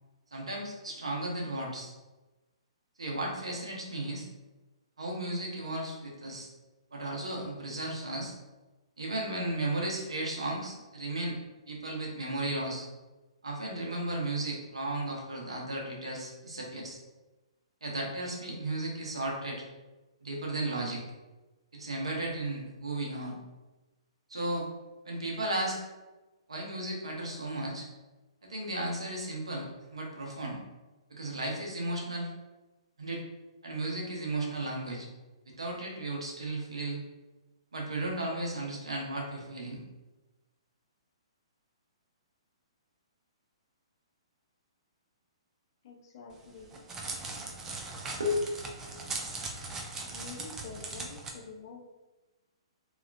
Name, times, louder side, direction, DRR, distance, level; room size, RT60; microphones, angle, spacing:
voice 1, 0.3-1.9 3.0-4.3 5.0-6.5 6.9-8.3 9.0-11.4 11.7-12.9 13.4-17.0 17.8-19.6 20.2-21.0 21.7-23.4 24.3-24.7 25.0-25.8 26.5-27.9 28.4-30.6 31.1-32.3 33.0-33.2 33.6-35.1 35.5-37.0 37.7-39.8 48.2-48.4, right 1 dB, 70° right, -1 dB, 0.8 m, -34 dB
voice 2, 45.8-46.8 50.0-51.8, left 4 dB, 45° left, 0 dB, 0.5 m, -47 dB
Crackle, 46.3-51.3, right 3 dB, 15° right, 0.4 m, -39 dB
2.8 x 2.3 x 2.4 m, 1.1 s
figure-of-eight pair, 120°, 3 cm